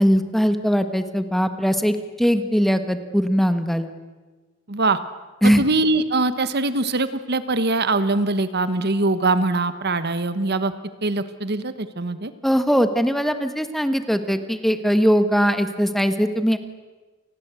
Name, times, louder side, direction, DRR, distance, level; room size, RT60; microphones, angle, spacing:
voice 1, 0.0-3.9 5.4-5.6 12.4-16.6, equal, ahead, 9 dB, 1.5 m, -20 dB
voice 2, 4.7-5.0 5.4-10.7 11.0-12.3, right 2 dB, 55° right, 12 dB, 1.2 m, -22 dB
29.0 x 20.5 x 8.3 m, 1.3 s
head